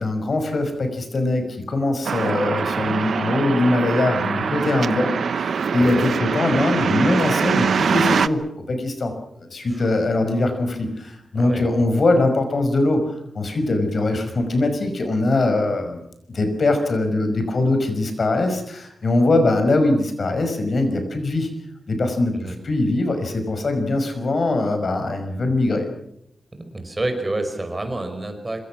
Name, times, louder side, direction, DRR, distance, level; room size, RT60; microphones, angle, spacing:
voice 1, 0.0-9.1 9.4-13.0 13.3-16.0 16.3-21.5 21.9-25.9, left 2 dB, 55° left, 7 dB, 5.6 m, -22 dB
sound 1, 2.1-8.3, right 6 dB, 90° right, 0.9 m, -23 dB
voice 2, 11.3-11.7 22.3-22.6 26.5-28.6, right 2 dB, 25° right, 6 dB, 5.2 m, -28 dB
26.0 x 24.5 x 6.2 m, 0.75 s
wide cardioid pair, 130°, 0 cm